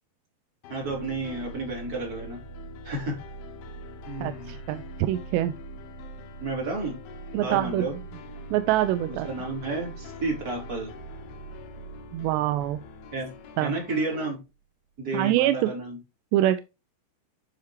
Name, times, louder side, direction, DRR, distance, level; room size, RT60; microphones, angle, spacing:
sound 1, 0.6-14.4, left 8 dB, 75° left, 3.1 m, -46 dB
voice 1, 0.7-2.4 2.8-3.2 4.1-4.5 6.4-7.0 7.4-8.0 9.3-10.9 13.1-13.3 13.6-14.4 15.0-16.0, right 2 dB, 20° right, -1 dB, 4.1 m, -31 dB
sound 2, 0.8-14.2, right 5 dB, 55° right, 0.8 m, -44 dB
voice 2, 4.2-5.5 7.3-7.9 8.5-9.3 12.1-12.8 13.6-13.7 15.1-15.7 16.3-16.6, right 13 dB, 85° right, 11 dB, 2.7 m, -24 dB
10.5 x 5.6 x 3.1 m, 0.26 s
omnidirectional pair, 4.9 m